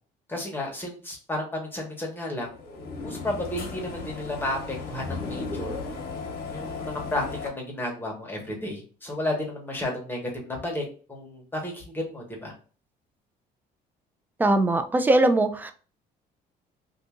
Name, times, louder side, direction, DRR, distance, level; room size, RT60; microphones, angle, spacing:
voice 1, 0.3-2.5 3.0-5.8 6.5-10.8 11.1-12.5, left 1 dB, 10° left, 0 dB, 1.2 m, -32 dB
sound 1, 2.5-7.5, left 4 dB, 70° left, 0.9 m, -35 dB
voice 2, 14.4-15.7, right 2 dB, 10° right, 8 dB, 0.4 m, -21 dB
2.6 x 2.6 x 3.6 m, 0.39 s
cardioid pair, 110°, 17 cm